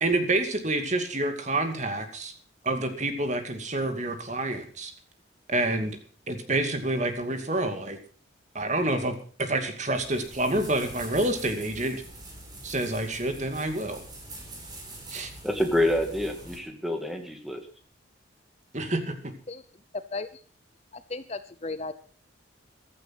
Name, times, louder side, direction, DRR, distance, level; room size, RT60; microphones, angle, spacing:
voice 1, 0.0-2.3 2.6-4.9 5.5-6.0 6.3-8.0 8.5-12.0 12.6-14.0 15.1-15.3 18.7-19.1, right 2 dB, 35° right, 7 dB, 2.4 m, -28 dB
sound 1, 10.0-16.6, right 1 dB, 20° right, 4.7 m, -44 dB
voice 2, 15.4-17.6, left 1 dB, ahead, 4 dB, 2.2 m, -27 dB
voice 3, 20.1-20.4 20.9-21.9, left 3 dB, 30° left, 12 dB, 0.8 m, -35 dB
15.5 x 13.0 x 5.9 m, 0.41 s
head